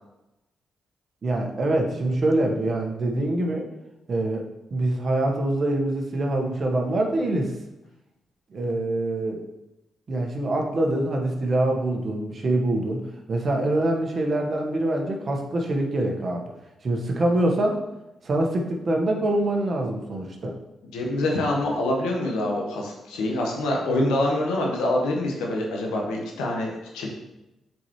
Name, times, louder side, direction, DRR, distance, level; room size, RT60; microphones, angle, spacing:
voice 1, 1.2-3.7 4.1-4.4 4.7-7.5 8.5-9.4 10.1-16.4 16.8-17.8 18.2-20.5, right 1 dB, 50° right, 2 dB, 1.3 m, -24 dB
voice 2, 20.9-27.1, left 1 dB, 90° left, -1 dB, 1.3 m, -25 dB
7.7 x 4.7 x 3.1 m, 0.95 s
supercardioid pair, 60°, 0 cm